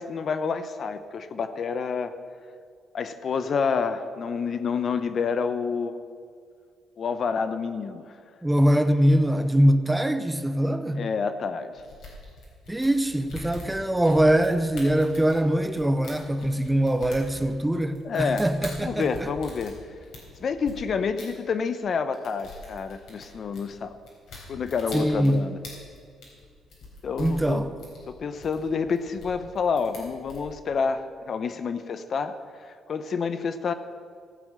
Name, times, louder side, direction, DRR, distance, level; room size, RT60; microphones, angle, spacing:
voice 1, 0.0-2.1 2.9-5.9 7.0-8.2 10.9-11.7 18.0-18.5 18.8-19.8 20.4-23.9 24.5-25.6 27.0-27.6 28.1-33.7, left 5 dB, 55° left, 0.8 m, -28 dB
voice 2, 8.4-11.1 12.7-19.3 24.9-25.5 27.2-27.7, right 1 dB, 10° right, 0.7 m, -23 dB
sound 1, 11.8-20.7 21.2-21.3 21.7-21.9 22.1-30.4, left 3 dB, 75° left, 4.0 m, -43 dB
16.0 x 7.1 x 6.5 m
cardioid pair, 90°, 0 cm